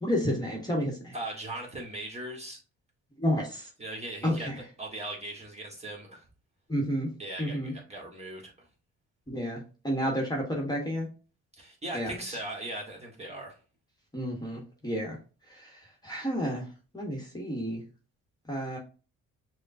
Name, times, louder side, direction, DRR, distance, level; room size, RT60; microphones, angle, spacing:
voice 1, 0.0-1.1 3.2-3.7 4.2-4.6 6.7-7.1 7.4-7.7 9.3-11.1 11.9-12.4 14.1-15.2 15.5-15.7 16.0-16.7 16.9-17.8 18.5-18.8, equal, 15° left, 1.2 m, -31 dB
voice 2, 1.1-2.6 3.8-4.5 4.8-6.2 7.2-8.5 11.6-13.5, right 1 dB, 20° right, 1.5 m, -39 dB
6.3 x 2.3 x 2.6 m
cardioid pair, 90°, 30 cm